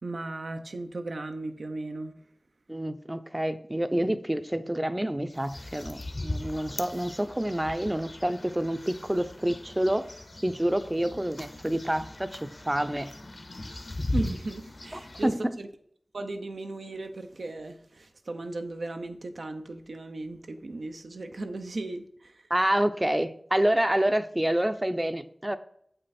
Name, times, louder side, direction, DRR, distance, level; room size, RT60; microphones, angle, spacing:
voice 1, 0.0-2.1 14.1-15.7 16.1-22.5, right 2 dB, 85° right, 0.7 m, -36 dB
voice 2, 2.7-10.1 10.4-13.1 14.9-15.5 22.5-25.6, right 1 dB, 20° right, 0.5 m, -28 dB
sound 1, 5.3-15.3, left 2 dB, 55° left, 0.7 m, -38 dB
7.8 x 5.4 x 4.2 m
wide cardioid pair, 70°, 0 cm